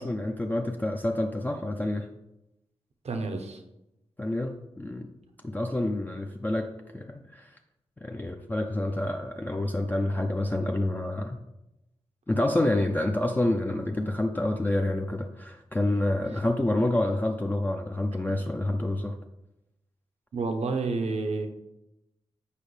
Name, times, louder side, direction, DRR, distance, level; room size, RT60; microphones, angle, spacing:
voice 1, 0.0-2.1 4.2-5.1 5.4-7.5 8.0-11.4 12.3-19.1, left 1 dB, 15° left, 3 dB, 0.5 m, -28 dB
voice 2, 3.0-3.6 20.3-21.5, right 3 dB, 75° right, 5 dB, 0.8 m, -29 dB
8.4 x 5.1 x 3.2 m, 0.90 s
wide cardioid pair, 95°, 11 cm